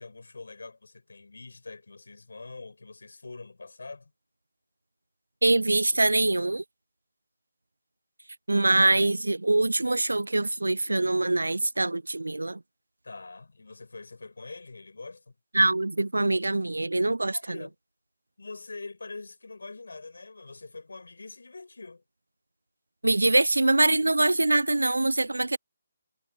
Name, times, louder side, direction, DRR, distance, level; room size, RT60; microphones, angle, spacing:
voice 1, 0.0-4.1 13.0-15.4 17.3-17.7 18.4-22.0, left 3 dB, 65° left, 7.1 m, -44 dB
voice 2, 5.4-6.6 8.5-12.6 15.5-17.6 23.0-25.6, right 2 dB, 75° right, 0.4 m, -24 dB
figure-of-eight pair, 145°, 0 cm